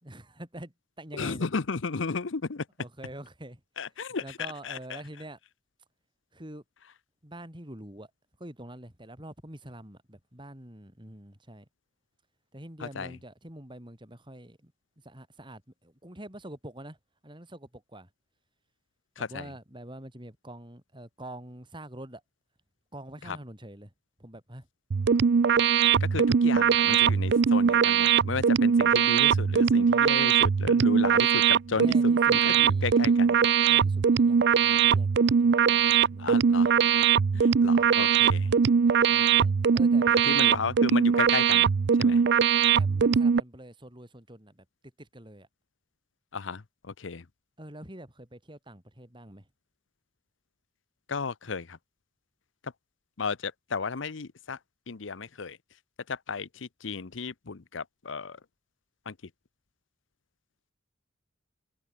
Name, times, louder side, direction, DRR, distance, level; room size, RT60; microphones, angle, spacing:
voice 1, 0.0-1.5 2.8-3.6 4.2-5.4 6.3-6.6 7.2-8.1 8.4-11.7 12.5-17.0 17.2-18.1 19.2-22.2 22.9-23.9 24.2-24.7 31.7-33.2 33.6-36.4 39.0-40.7 42.7-44.7 45.0-45.5 47.6-49.5, right 1 dB, 25° right, 4.8 m, -45 dB
voice 2, 1.2-2.6 3.8-4.2 4.6-5.0 13.0-13.1 19.2-19.5 23.3-23.4 25.8-31.9 32.3-33.4 36.2-36.7 37.3-38.5 40.3-41.7 42.0-42.2 46.3-47.2 51.1-51.8 52.6-52.7 53.2-54.6 54.9-55.6 56.1-58.4 59.1-59.2, left 4 dB, 80° left, 0.8 m, -34 dB
sound 1, 24.9-43.4, right 7 dB, 60° right, 0.4 m, -22 dB
head